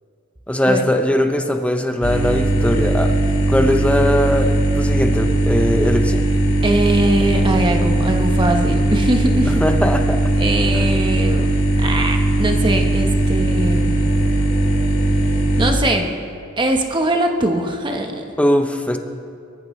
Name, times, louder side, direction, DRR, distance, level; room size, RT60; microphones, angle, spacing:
voice 1, 0.5-3.1 3.5-6.2 9.6-10.3 10.7-10.9 18.4-19.0, left 1 dB, 5° left, 5 dB, 0.8 m, -20 dB
sound 1, 2.0-15.7, right 1 dB, 85° left, 2.4 m, -18 dB
voice 2, 6.6-9.6 10.4-11.5 11.8-14.0 15.6-16.2 16.6-18.2, right 1 dB, 20° right, 3 dB, 1.2 m, -21 dB
24.0 x 14.0 x 3.2 m, 2.4 s
head